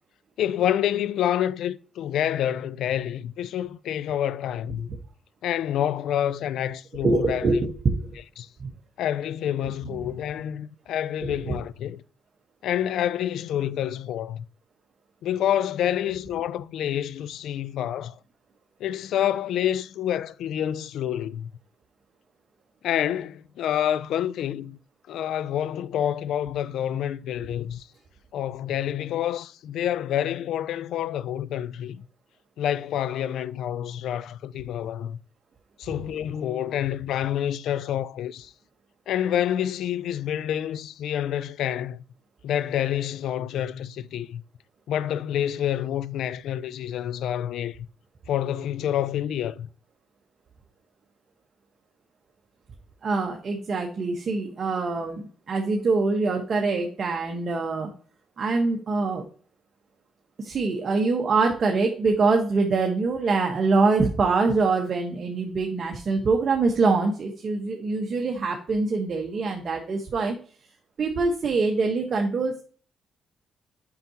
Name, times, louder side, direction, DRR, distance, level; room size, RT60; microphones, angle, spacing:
voice 1, 0.4-4.9 5.4-7.7 8.4-8.5 9.0-12.0 12.6-14.4 15.2-18.2 18.8-21.5 22.8-24.8 25.1-27.9 28.3-32.0 32.6-35.2 35.8-38.5 39.1-42.0 42.4-44.4 44.9-47.9 48.3-49.7, left 10 dB, 80° left, 0.4 m, -28 dB
voice 2, 7.0-8.2 11.2-11.4 53.0-57.9 58.4-59.2 60.4-70.4 71.0-72.6, right 3 dB, 45° right, 1.2 m, -24 dB
7.5 x 5.8 x 2.8 m
cardioid pair, 90°, 0 cm